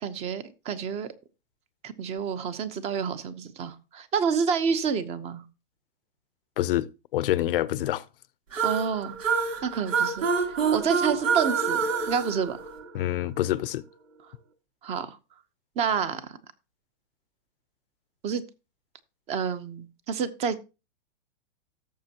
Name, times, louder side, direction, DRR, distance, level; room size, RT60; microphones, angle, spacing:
voice 1, 0.0-1.1 1.8-5.4 8.6-9.2 9.6-10.3 10.7-11.8 12.1-12.6 14.8-15.2 15.8-16.3 18.2-18.4 19.3-20.6, right 6 dB, 15° right, 0.8 m, -28 dB
voice 2, 6.6-8.0 12.9-13.8, left 14 dB, 45° left, 0.7 m, -27 dB
sound 1, 8.5-13.3, right 5 dB, 90° right, 3.3 m, -27 dB
17.0 x 7.2 x 2.9 m
hypercardioid pair, 150°, 37 cm